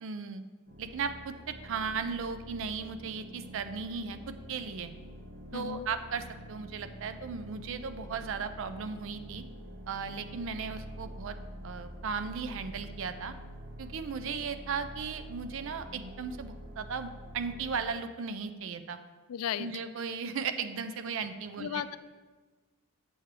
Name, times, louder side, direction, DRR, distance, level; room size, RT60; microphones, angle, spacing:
voice 1, 0.0-0.4 0.8-4.2 4.5-4.9 5.5-9.4 9.9-11.4 11.6-13.3 13.8-19.0 19.6-22.0, right 5 dB, 60° right, 10 dB, 0.4 m, -36 dB
sound 1, 0.7-17.9, equal, 45° right, 1.3 m, -46 dB
voice 2, 5.5-5.9 19.3-19.7 21.6-22.0, left 9 dB, 90° left, 15 dB, 0.3 m, -34 dB
7.8 x 5.9 x 3.2 m, 1.3 s
head